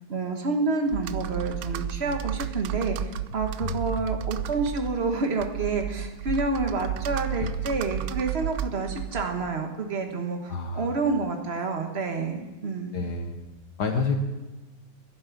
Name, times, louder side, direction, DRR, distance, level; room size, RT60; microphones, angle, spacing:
voice 1, 0.1-13.0, right 3 dB, 35° right, 4 dB, 1.4 m, -29 dB
Computer keyboard, 0.9-9.5, right 10 dB, 80° right, 1.3 m, -32 dB
voice 2, 10.5-10.9 12.9-13.4 13.8-14.2, left 4 dB, 55° left, 5 dB, 1.5 m, -28 dB
11.5 x 10.5 x 7.2 m, 1.2 s
omnidirectional pair, 2.3 m